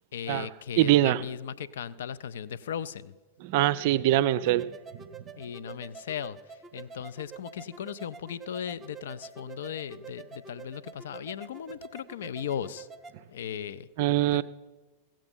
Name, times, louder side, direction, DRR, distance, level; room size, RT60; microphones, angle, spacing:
voice 1, 0.1-3.2 5.4-12.9 13.3-13.9 14.3-14.4, left 8 dB, 60° left, 0.4 m, -37 dB
voice 2, 0.8-1.2 3.4-4.7 14.0-14.4, right 14 dB, 50° right, 0.4 m, -23 dB
sound 1, 4.4-13.2, right 5 dB, 15° right, 0.7 m, -47 dB
16.0 x 7.4 x 5.2 m
figure-of-eight pair, 90°, 0 cm